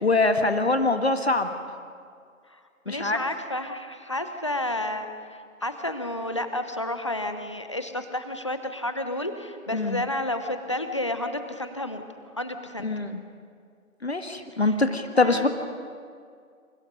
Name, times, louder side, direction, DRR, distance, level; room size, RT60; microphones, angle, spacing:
voice 1, 0.0-1.5 2.9-3.2 9.7-10.0 12.8-13.2 14.0-15.5, left 3 dB, 50° left, 8 dB, 1.6 m, -23 dB
voice 2, 2.9-12.0 12.4-12.9 14.5-14.8 15.1-15.5, left 1 dB, 20° left, 8 dB, 1.0 m, -31 dB
29.0 x 27.5 x 5.4 m, 2.2 s
figure-of-eight pair, 155°, 41 cm